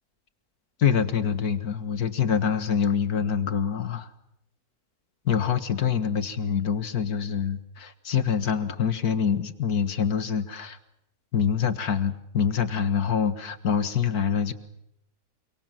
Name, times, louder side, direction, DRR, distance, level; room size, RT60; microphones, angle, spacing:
voice 1, 0.8-4.1 5.3-10.8 11.3-14.5, left 7 dB, 75° left, 12 dB, 2.1 m, -25 dB
29.0 x 24.5 x 7.6 m, 0.80 s
omnidirectional pair, 1.6 m